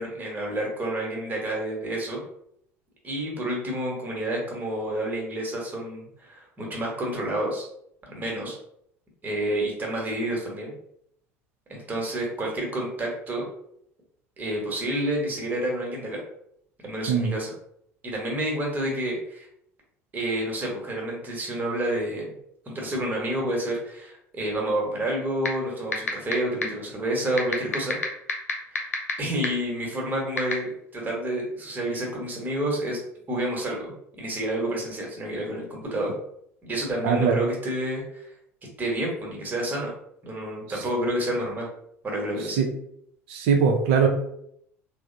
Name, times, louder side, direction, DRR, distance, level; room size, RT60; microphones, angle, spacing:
voice 1, 0.0-2.2 3.0-7.6 8.1-8.5 9.2-10.7 11.7-13.4 14.4-16.2 16.8-17.5 18.0-19.5 20.1-22.3 22.7-28.0 28.8-28.9 29.2-33.0 33.3-36.1 36.6-38.3 38.8-39.9 40.2-41.7 42.0-42.6, right 1 dB, 25° right, -2 dB, 1.0 m, -29 dB
sound 1, 25.4-25.5 25.9-26.3 26.6-26.7 27.4-29.1 29.4-29.5 30.4-30.5, left 5 dB, 80° left, 0.4 m, -24 dB
voice 2, 37.0-37.4 42.6-42.7 43.3-44.1, right 6 dB, 60° right, 3 dB, 0.5 m, -21 dB
3.2 x 2.0 x 2.6 m, 0.72 s
figure-of-eight pair, 65°, 8 cm